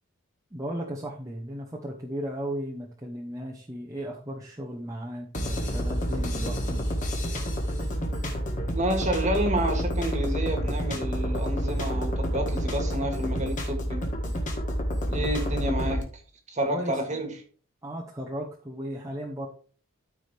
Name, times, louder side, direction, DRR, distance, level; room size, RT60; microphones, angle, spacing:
voice 1, 0.5-6.8 15.1-15.5 16.7-17.0 17.8-19.5, equal, 15° right, -2 dB, 0.9 m, -35 dB
sound 1, 5.3-16.0, equal, 35° left, 1.7 m, -29 dB
voice 2, 8.7-14.1 15.1-16.1 16.5-17.3, right 1 dB, 35° right, 4 dB, 1.7 m, -29 dB
13.5 x 4.9 x 3.4 m, 0.42 s
head